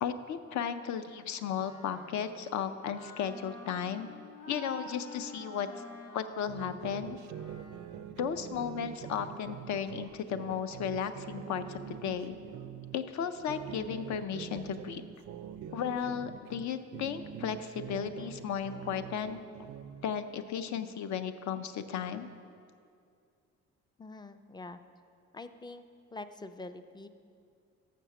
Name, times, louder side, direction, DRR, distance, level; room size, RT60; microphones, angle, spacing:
voice 1, 0.0-4.1 4.5-5.7 6.1-7.2 8.1-12.4 12.9-15.0 15.7-19.4 20.0-22.3, left 8 dB, 70° left, 10 dB, 0.5 m, -35 dB
Wind instrument woodwind instrument, 1.5-8.1, equal, 50° left, 1.7 m, -49 dB
sound 1, 6.5-13.0 13.4-16.7 16.9-20.1, right 9 dB, 70° right, 0.4 m, -44 dB
voice 2, 24.0-24.8 25.3-25.9 26.1-27.1, left 2 dB, 15° left, 10 dB, 0.3 m, -45 dB
6.4 x 6.1 x 6.9 m, 2.3 s
cardioid pair, 90°, 30 cm